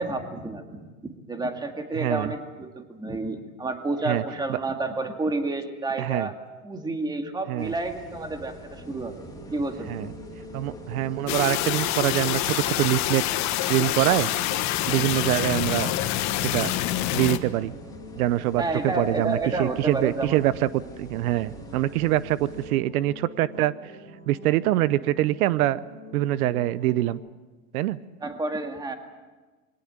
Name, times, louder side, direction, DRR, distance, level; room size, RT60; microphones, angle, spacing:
voice 1, 0.0-6.4 6.6-10.1 18.6-20.4 28.2-28.9, right 2 dB, 10° right, 5 dB, 1.9 m, -30 dB
voice 2, 1.9-2.3 4.1-4.2 4.5-4.6 6.0-6.3 7.5-7.7 9.9-10.1 10.5-14.3 14.9-15.9 16.4-16.7 17.1-17.7 18.2-23.9 24.3-25.8 26.1-27.2 27.7-28.0, right 14 dB, 80° right, 17 dB, 0.8 m, -24 dB
sound 1, 7.6-22.7, left 1 dB, 10° left, 2.6 m, -45 dB
sound 2, 8.7-27.1, right 1 dB, 35° right, 7.2 m, -45 dB
sound 3, 11.3-17.4, left 14 dB, 40° left, 1.2 m, -26 dB
22.5 x 18.0 x 8.8 m, 1.3 s
supercardioid pair, 150°, 43 cm